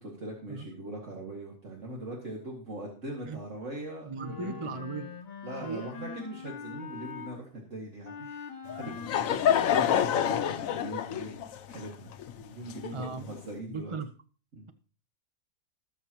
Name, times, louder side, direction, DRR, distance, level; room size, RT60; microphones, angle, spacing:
voice 1, 0.0-4.8 5.4-8.5 8.8-9.4 9.7-12.1 12.4-14.0 14.5-14.7, right 1 dB, 60° right, -2 dB, 2.5 m, -41 dB
voice 2, 4.0-5.1 5.5-5.9 12.9-13.3 13.7-14.1, right 4 dB, 30° right, 9 dB, 0.6 m, -37 dB
Wind instrument woodwind instrument, 4.1-7.4 8.0-10.8, left 5 dB, 50° left, 1.3 m, -43 dB
Laughter / Crowd, 8.7-13.4, left 9 dB, 80° left, 1.1 m, -28 dB
20.0 x 7.3 x 3.0 m, 0.38 s
omnidirectional pair, 1.4 m